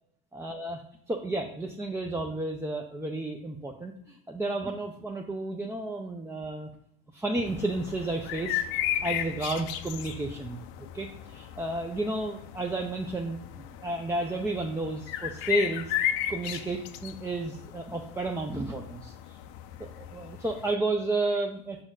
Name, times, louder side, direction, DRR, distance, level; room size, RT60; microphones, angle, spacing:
voice 1, 0.3-0.8 1.1-6.7 7.1-8.6 9.0-10.6 10.9-13.4 13.8-15.9 16.3-19.4 19.8-21.8, right 2 dB, 10° right, 2 dB, 0.5 m, -32 dB
sound 1, 7.4-20.7, left 11 dB, 65° left, 0.6 m, -35 dB
6.0 x 4.4 x 3.8 m, 0.73 s
hypercardioid pair, 90°, 33 cm